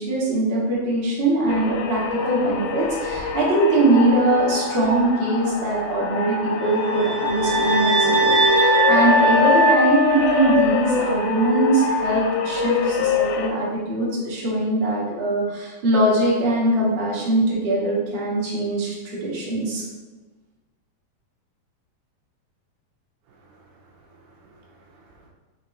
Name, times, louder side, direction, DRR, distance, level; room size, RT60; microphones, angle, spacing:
voice 1, 0.0-19.8, right 2 dB, 35° right, -7 dB, 0.9 m, -22 dB
sound 1, 1.5-13.5, left 6 dB, 80° left, 1.9 m, -25 dB
sound 2, 6.7-11.0, right 1 dB, 55° right, 2.5 m, -20 dB
voice 2, 23.3-25.3, right 2 dB, 75° right, -1 dB, 2.2 m, -55 dB
6.2 x 3.6 x 4.3 m, 1.2 s
omnidirectional pair, 4.0 m